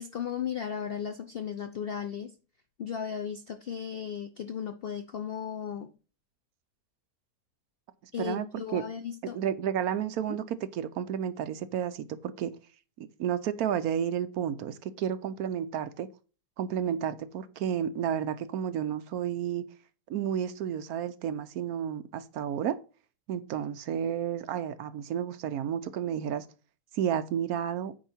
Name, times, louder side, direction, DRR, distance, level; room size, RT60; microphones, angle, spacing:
voice 1, 0.0-2.3 2.8-5.9 8.1-9.4, left 8 dB, 65° left, 0.5 m, -35 dB
voice 2, 9.3-12.5 13.0-16.1 16.6-19.6 20.1-22.8 23.3-26.4 26.9-27.9, right 9 dB, 70° right, 1.1 m, -31 dB
9.1 x 4.8 x 4.3 m
omnidirectional pair, 1.7 m